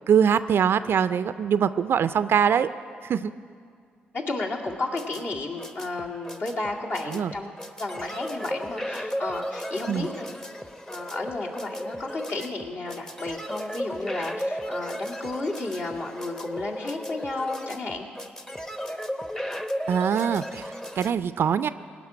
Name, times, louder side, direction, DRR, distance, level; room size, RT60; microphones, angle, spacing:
voice 1, 0.1-2.7 3.0-3.3 7.1-7.3 9.9-10.1 19.9-21.7, right 8 dB, 60° right, 13 dB, 0.4 m, -23 dB
voice 2, 4.1-7.5 7.8-10.3 10.9-18.1, left 2 dB, 55° left, -2 dB, 2.0 m, -32 dB
sound 1, 4.7-21.1, equal, 15° left, 0.8 m, -34 dB
17.5 x 6.0 x 9.6 m, 2.1 s
hypercardioid pair, 45°, 4 cm